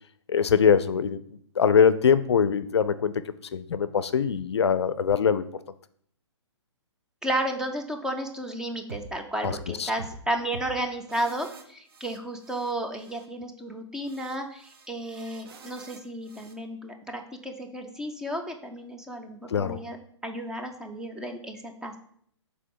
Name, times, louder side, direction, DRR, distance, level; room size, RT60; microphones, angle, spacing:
voice 1, 0.3-1.2 1.6-3.1 3.5-5.5 9.4-9.5 9.8-9.9 19.5-19.8, left 7 dB, 65° left, 14 dB, 0.4 m, -22 dB
voice 2, 7.2-20.0 20.2-22.0, right 1 dB, 5° right, 4 dB, 0.4 m, -33 dB
sound 1, 8.9-9.1 9.4-9.6 10.0-10.2 10.5-10.7 11.1-12.7 13.0-13.3 14.0-16.5, right 4 dB, 50° right, 1.0 m, -45 dB
5.8 x 3.9 x 4.7 m, 0.64 s
figure-of-eight pair, 125°, 15 cm